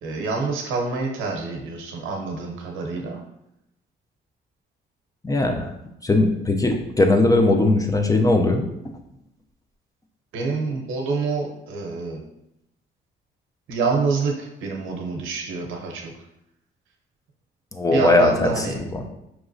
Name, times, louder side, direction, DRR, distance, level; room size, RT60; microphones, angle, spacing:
voice 1, 0.0-3.2 10.3-12.2 13.7-16.1 17.9-18.8, right 4 dB, 85° right, 1 dB, 0.8 m, -27 dB
voice 2, 5.2-5.7 6.0-8.7 17.7-19.0, left 2 dB, 15° left, 4 dB, 0.5 m, -19 dB
4.7 x 3.0 x 2.6 m, 0.84 s
cardioid pair, 90°, 20 cm